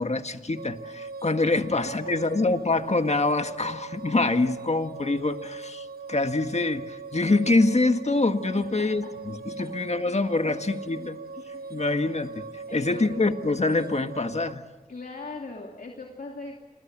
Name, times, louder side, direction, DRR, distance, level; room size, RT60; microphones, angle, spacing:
voice 1, 0.0-11.2 11.7-14.6, left 2 dB, 45° left, 8 dB, 1.7 m, -25 dB
sound 1, 0.5-14.5, right 4 dB, 80° right, 0.9 m, -40 dB
voice 2, 8.6-8.9 9.8-10.2 10.9-11.1 11.5-11.8 12.7-13.1 14.9-16.5, left 3 dB, 65° left, 0 dB, 2.7 m, -40 dB
28.0 x 22.0 x 7.5 m, 1.3 s
cardioid pair, 45°, 16 cm